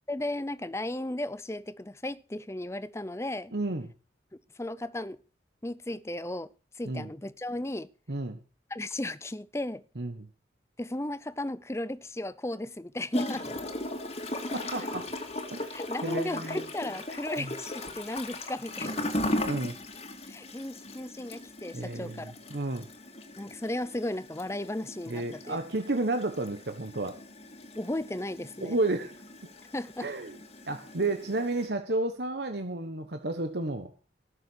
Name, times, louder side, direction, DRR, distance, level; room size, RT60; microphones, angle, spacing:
voice 1, 0.1-3.5 4.5-5.2 5.6-7.9 8.7-9.8 10.8-13.5 15.7-19.1 20.3-22.3 23.4-25.6 27.7-28.8 29.7-30.1, left 1 dB, 15° left, 0.6 m, -35 dB
voice 2, 3.5-3.9 6.8-7.1 8.1-8.4 9.9-10.3 14.5-15.1 15.5-15.7 16.0-16.6 17.4-17.5 19.5-19.8 21.7-22.9 25.1-27.2 28.6-29.2 30.0-30.4 30.7-33.9, right 2 dB, 65° right, 1.3 m, -32 dB
Gurgling / Toilet flush, 13.1-31.7, left 1 dB, 35° left, 2.3 m, -38 dB
18.0 x 7.0 x 6.4 m
head